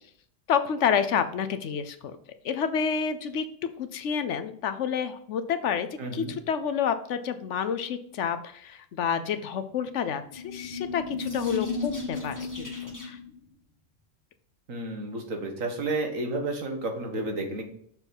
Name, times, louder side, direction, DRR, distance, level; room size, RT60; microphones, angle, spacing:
voice 1, 0.5-2.2 2.4-5.9 6.1-13.2, left 7 dB, 70° left, 10 dB, 1.0 m, -29 dB
voice 2, 6.0-6.3 14.7-17.7, right 2 dB, 90° right, 3 dB, 1.8 m, -31 dB
sound 1, 10.3-13.3, left 4 dB, 15° left, 1.6 m, -34 dB
6.9 x 4.6 x 5.3 m, 0.64 s
omnidirectional pair, 1.3 m